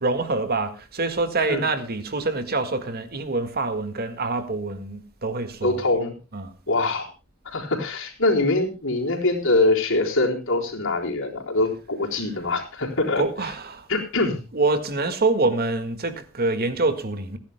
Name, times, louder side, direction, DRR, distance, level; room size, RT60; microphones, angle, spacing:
voice 1, 0.0-5.8 6.3-6.5 13.1-13.9 14.5-17.4, right 3 dB, 45° right, 1.8 m, -25 dB
voice 2, 5.6-6.1 6.7-7.1 7.5-13.2 13.9-14.4, left 2 dB, 65° left, 3.8 m, -23 dB
29.0 x 10.5 x 2.2 m
head